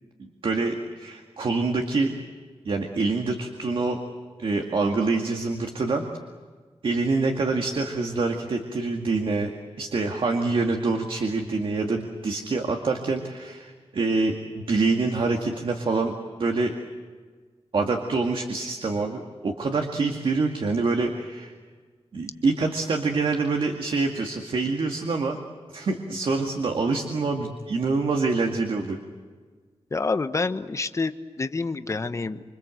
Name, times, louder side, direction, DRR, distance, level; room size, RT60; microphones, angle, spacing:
voice 1, 0.2-2.1 2.7-4.0 4.4-6.0 6.8-9.5 9.8-16.1 16.4-16.7 17.7-21.5 22.1-25.4 25.7-29.0, right 3 dB, 55° right, 3 dB, 2.1 m, -26 dB
voice 2, 29.9-32.4, left 3 dB, 30° left, 10 dB, 1.0 m, -28 dB
26.5 x 25.5 x 7.8 m, 1.5 s
wide cardioid pair, 145°, 10 cm